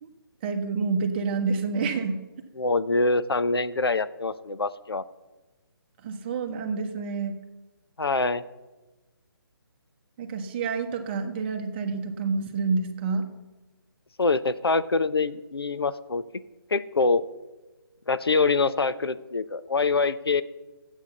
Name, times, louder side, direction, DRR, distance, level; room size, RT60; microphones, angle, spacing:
voice 1, 0.4-2.2 6.0-7.4 10.2-13.2, right 4 dB, 25° right, 5 dB, 1.1 m, -28 dB
voice 2, 2.6-5.0 8.0-8.4 14.2-16.2 16.7-17.2 18.1-20.4, left 3 dB, 85° left, 14 dB, 0.7 m, -24 dB
12.0 x 8.2 x 6.8 m, 1.2 s
figure-of-eight pair, 145°, 12 cm